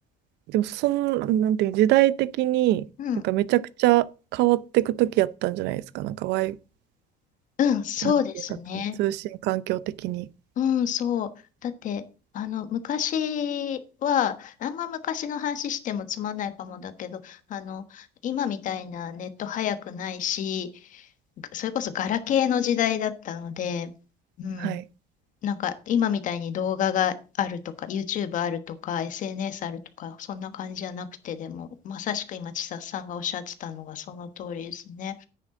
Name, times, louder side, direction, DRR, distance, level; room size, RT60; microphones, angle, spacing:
voice 1, 0.5-2.9 3.2-4.0 4.3-6.6 8.0-8.1 8.7-10.3 24.6-24.8, right 15 dB, 80° right, 0.6 m, -23 dB
voice 2, 7.6-9.0 10.6-11.3 11.6-12.0 12.3-21.0 21.5-23.9 24.4-24.8 25.4-35.3, left 9 dB, 50° left, 1.3 m, -29 dB
10.0 x 9.4 x 3.8 m
cardioid pair, 165°, 17 cm